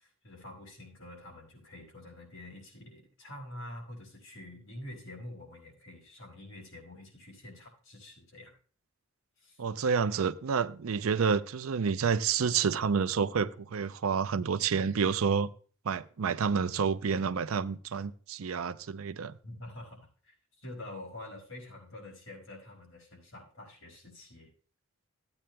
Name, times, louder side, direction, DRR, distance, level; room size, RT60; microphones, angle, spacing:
voice 1, 0.0-8.5 9.4-9.6 19.4-24.5, left 1 dB, 75° left, 4.7 m, -47 dB
voice 2, 9.6-15.5 15.8-19.3, right 6 dB, 85° right, 0.5 m, -29 dB
15.5 x 8.8 x 2.2 m
head